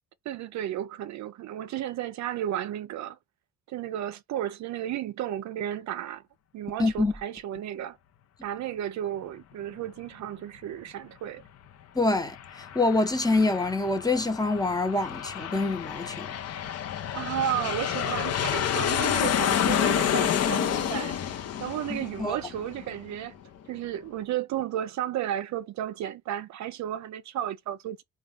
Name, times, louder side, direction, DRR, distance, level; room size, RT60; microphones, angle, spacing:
voice 1, 0.3-3.2 3.7-6.2 6.5-8.0 8.4-11.4 17.1-21.2 21.6-23.4 23.7-28.0, right 11 dB, 65° right, 0.5 m, -33 dB
voice 2, 6.8-7.1 11.9-16.3 21.9-22.4, left 2 dB, 10° left, 0.8 m, -26 dB
Aircraft, 12.1-23.3, left 9 dB, 55° left, 0.6 m, -29 dB
3.9 x 2.3 x 3.3 m
cardioid pair, 90°, 30 cm